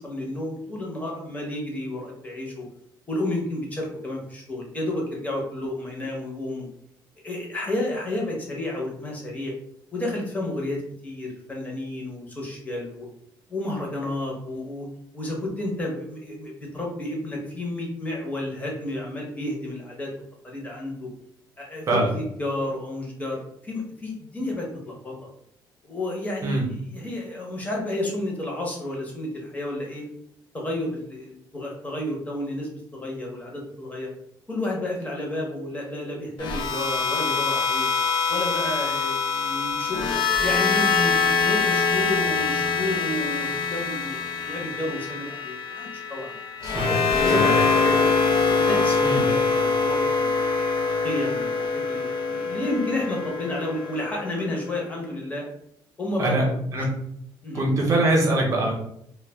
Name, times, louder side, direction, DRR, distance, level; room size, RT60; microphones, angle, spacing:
voice 1, 0.0-2.7 3.1-6.7 7.2-9.5 9.9-13.1 13.5-14.9 15.1-20.1 20.4-21.1 21.6-21.8 22.1-25.1 25.8-26.6 26.9-30.0 30.5-34.1 34.5-37.9 38.3-40.1 40.4-46.3 46.9-48.0 48.4-50.3 51.0-55.4 56.0-56.6 57.4-57.6, left 1 dB, 20° left, -1 dB, 0.7 m, -31 dB
sound 1, 36.4-54.6, left 4 dB, 60° left, 0.4 m, -24 dB
voice 2, 46.6-47.0 47.3-47.5 49.0-49.2 56.2-56.4 56.7-56.9 57.5-58.7, right 2 dB, 35° right, -1 dB, 0.8 m, -23 dB
2.2 x 2.1 x 3.3 m, 0.72 s
cardioid pair, 145°, 9 cm